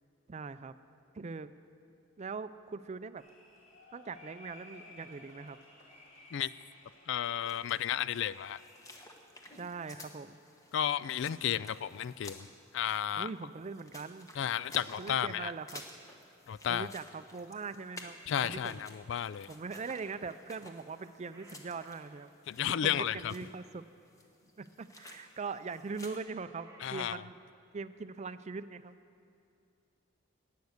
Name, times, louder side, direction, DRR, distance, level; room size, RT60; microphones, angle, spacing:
voice 1, 0.3-0.7 1.1-1.5 2.2-3.2 3.9-5.6 9.5-10.4 13.2-14.3 15.0-15.8 16.7-18.9 19.5-22.3 22.7-23.8 24.6-27.4 27.7-29.0, right 4 dB, 35° right, 13 dB, 0.4 m, -41 dB
sound 1, 3.2-9.0, left 2 dB, 35° left, 2.5 m, -56 dB
voice 2, 7.1-8.6 10.7-12.5 12.7-13.3 14.4-15.5 16.5-16.9 18.3-19.5 22.5-23.3 26.8-27.2, left 9 dB, 65° left, 18 dB, 0.3 m, -33 dB
sound 2, 7.5-26.2, left 2 dB, 15° left, 1.1 m, -54 dB
sound 3, 19.9-22.3 25.5-27.6, right 2 dB, 15° right, 1.6 m, -62 dB
17.5 x 9.4 x 6.5 m, 2.5 s
head